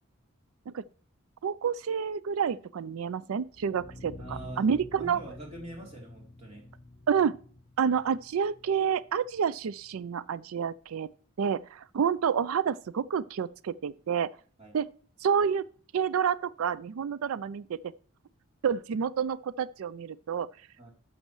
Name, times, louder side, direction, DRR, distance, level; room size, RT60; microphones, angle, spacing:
voice 1, 1.4-4.1 4.6-5.2 7.1-7.4 7.8-11.1 11.4-14.3 14.7-14.9 15.2-15.6 15.9-17.9 18.6-20.5, right 7 dB, 85° right, 0.4 m, -29 dB
sound 1, 3.4-9.4, left 1 dB, 35° left, 0.8 m, -48 dB
voice 2, 4.2-6.7 14.6-14.8 20.8-20.9, right 1 dB, 30° right, 3.2 m, -44 dB
12.0 x 7.2 x 3.1 m
head